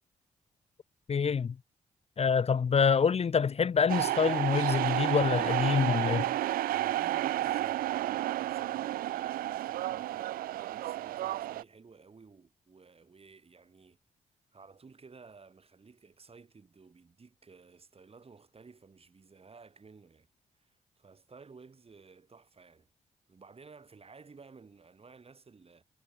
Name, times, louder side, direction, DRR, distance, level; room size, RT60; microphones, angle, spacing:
voice 1, 1.1-1.5 2.2-6.2, left 6 dB, 45° left, 0.8 m, -26 dB
sound 1, 3.9-11.6, right 14 dB, 85° right, 1.0 m, -31 dB
voice 2, 6.7-14.0 14.5-20.3 20.7-22.9 23.3-25.8, right 4 dB, 40° right, 6.1 m, -55 dB
supercardioid pair, 55°, 15 cm